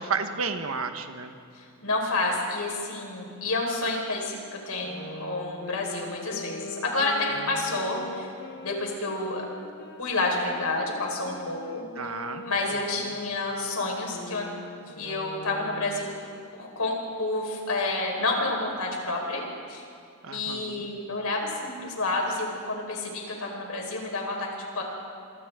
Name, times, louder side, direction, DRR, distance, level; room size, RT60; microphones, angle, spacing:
voice 1, 0.0-1.3 7.4-7.8 11.9-12.4 12.9-13.1 20.2-20.9, right 5 dB, 70° right, 7 dB, 1.3 m, -33 dB
voice 2, 1.5-8.3 8.6-9.4 10.0-11.8 12.4-14.5 15.0-16.1 16.5-19.4 19.7-19.8 20.3-24.8, left 2 dB, 85° left, 0 dB, 4.8 m, -29 dB
sound 1, 4.8-10.0 10.5-16.1, left 1 dB, 50° left, 1.4 m, -41 dB
27.0 x 25.5 x 3.8 m, 2.3 s
head